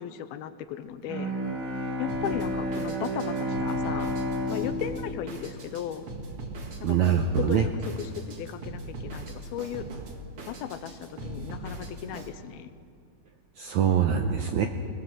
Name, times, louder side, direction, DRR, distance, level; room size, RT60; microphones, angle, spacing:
voice 1, 0.0-1.3 2.0-4.1 4.5-6.1 6.8-7.0 7.4-9.9 10.5-12.7, left 10 dB, 80° left, 11 dB, 2.7 m, -36 dB
Bowed string instrument, 1.1-6.3, equal, 25° right, 2.2 m, -31 dB
Drum kit, 2.1-12.3, right 2 dB, 45° right, 2.3 m, -40 dB
voice 2, 6.8-7.6 13.6-14.7, right 8 dB, 75° right, 5 dB, 1.7 m, -23 dB
22.5 x 19.0 x 7.6 m, 2.3 s
omnidirectional pair, 4.4 m